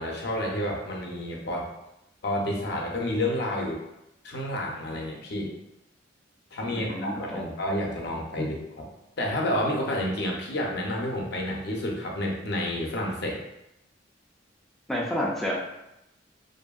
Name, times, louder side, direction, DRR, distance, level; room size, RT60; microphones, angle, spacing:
voice 1, 0.0-1.7 2.2-3.8 4.2-5.5 6.5-8.8 9.2-13.4, left 1 dB, 60° left, -1 dB, 0.5 m, -30 dB
voice 2, 6.8-7.5 8.4-8.5 14.9-15.7, equal, ahead, -5 dB, 0.3 m, -30 dB
2.6 x 2.5 x 2.3 m, 0.88 s
head